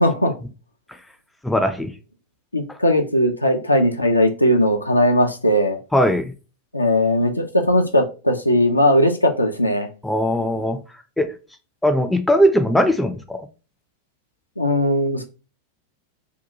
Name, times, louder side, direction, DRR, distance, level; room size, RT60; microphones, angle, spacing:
voice 1, 0.0-0.4 2.5-5.8 6.7-9.9 14.6-15.2, left 1 dB, 85° left, 0.4 m, -18 dB
voice 2, 1.4-1.9 2.7-2.8 5.9-6.3 10.0-10.8 11.2-11.3 11.8-13.5, equal, 5° left, 0.4 m, -19 dB
2.6 x 2.2 x 2.6 m
figure-of-eight pair, 90°, 0 cm